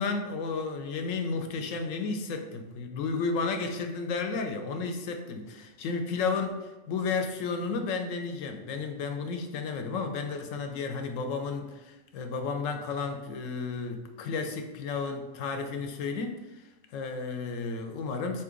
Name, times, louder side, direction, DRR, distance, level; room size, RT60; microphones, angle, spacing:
voice 1, 0.0-16.6 16.9-18.4, left 4 dB, 80° left, 6 dB, 0.9 m, -32 dB
3.8 x 2.8 x 3.7 m, 1.1 s
omnidirectional pair, 1.3 m